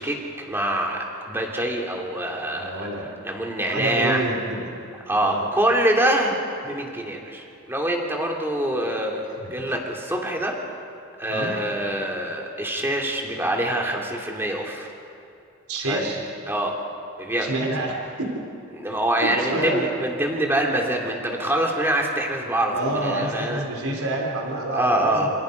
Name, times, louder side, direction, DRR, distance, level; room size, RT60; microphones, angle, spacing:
voice 1, 0.0-4.2 5.0-10.5 11.2-14.9 15.8-16.1 16.5-16.8 17.2-17.5 18.7-23.6 24.7-25.3, right 1 dB, 10° right, 0 dB, 3.1 m, -25 dB
voice 2, 2.5-3.1 3.7-4.7 5.2-5.4 9.4-9.7 11.3-11.5 15.7-16.2 17.4-17.9 18.2-18.3 19.2-19.9 22.7-25.3, right 1 dB, 80° right, 0 dB, 4.0 m, -28 dB
28.5 x 28.5 x 5.4 m, 2.6 s
head